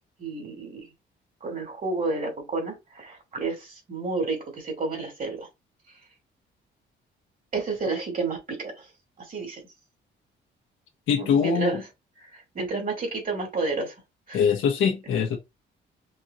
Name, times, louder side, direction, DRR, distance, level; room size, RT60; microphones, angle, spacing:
voice 1, 0.2-0.9 1.4-5.5 7.5-8.8 9.3-9.6 11.2-11.8 12.3-13.9 14.3-14.4, right 3 dB, 45° right, 2.7 m, -30 dB
voice 2, 11.1-11.8 14.3-15.4, left 6 dB, 85° left, 1.2 m, -23 dB
5.4 x 3.0 x 2.7 m
cardioid pair, 90°, 20 cm